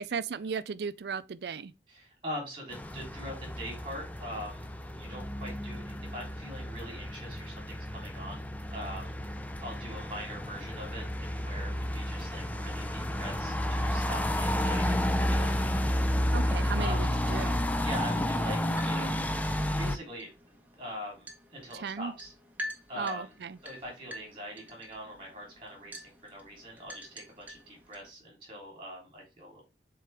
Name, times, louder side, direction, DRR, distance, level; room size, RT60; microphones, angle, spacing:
voice 1, 0.0-1.7 16.3-17.6 21.7-22.1 23.0-23.6, right 6 dB, 65° right, 0.4 m, -36 dB
voice 2, 1.9-8.4 8.7-9.1 9.6-15.6 16.8-17.0 17.8-18.6 18.8-19.2 19.8-20.3 20.7-22.3 22.9-23.3 23.6-29.6, equal, 30° right, 3.4 m, -42 dB
sound 1, 2.7-20.0, left 1 dB, 10° left, 0.4 m, -31 dB
sound 2, 18.4-28.1, left 1 dB, 10° right, 1.1 m, -47 dB
7.6 x 3.8 x 3.4 m
head